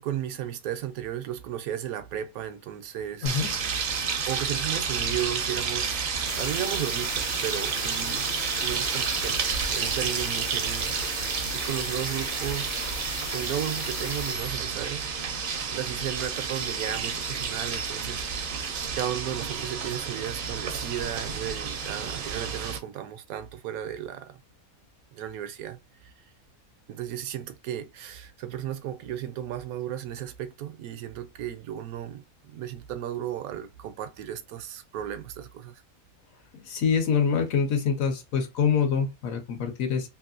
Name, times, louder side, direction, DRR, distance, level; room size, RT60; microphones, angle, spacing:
voice 1, 0.0-3.5 4.3-8.3 8.6-11.0 11.5-13.0 13.3-15.1 15.7-18.5 18.9-24.4 25.1-26.1 26.9-35.8, right 11 dB, 80° right, 1.0 m, -34 dB
ER fountainoustide, 3.3-22.8, right 6 dB, 55° right, 0.6 m, -30 dB
sound 1, 6.3-14.4, left 5 dB, 50° left, 0.6 m, -39 dB
voice 2, 36.5-40.1, left 6 dB, 70° left, 1.2 m, -25 dB
3.0 x 2.6 x 2.5 m
omnidirectional pair, 1.5 m